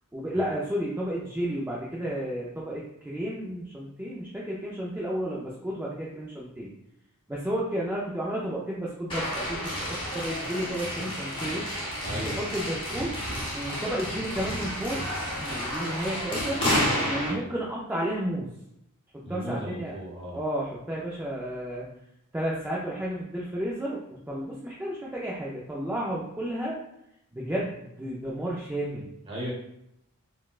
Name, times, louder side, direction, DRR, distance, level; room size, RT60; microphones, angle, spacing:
voice 1, 0.1-6.7 7.3-11.6 12.1-13.1 13.5-15.0 15.3-16.6 17.1-18.5 19.3-20.0 20.3-21.9 22.3-24.0 24.3-26.8 27.3-29.1, right 1 dB, 10° right, -5 dB, 0.3 m, -32 dB
sound 1, 9.1-17.3, equal, 25° left, 0.8 m, -30 dB
voice 2, 12.0-12.4 17.2-17.5 19.2-20.4 29.3-29.5, equal, 25° right, -5 dB, 1.0 m, -36 dB
4.1 x 2.1 x 2.3 m, 0.80 s
head